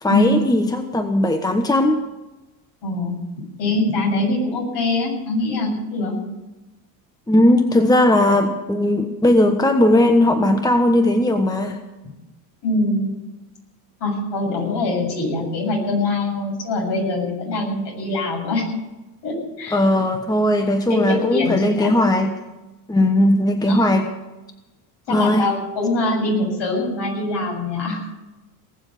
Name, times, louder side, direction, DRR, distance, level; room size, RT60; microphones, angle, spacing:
voice 1, 0.0-2.0 7.3-11.8 19.7-22.3 22.9-24.1 25.1-25.5, left 1 dB, 10° left, 6 dB, 1.2 m, -18 dB
voice 2, 2.8-3.1 3.6-6.2 12.6-13.1 14.0-18.7 19.2-19.8 20.9-21.9 23.7-23.8 25.1-28.0, left 2 dB, 55° left, 0 dB, 7.6 m, -23 dB
19.5 x 7.3 x 9.5 m, 1.1 s
supercardioid pair, 105°, 50 cm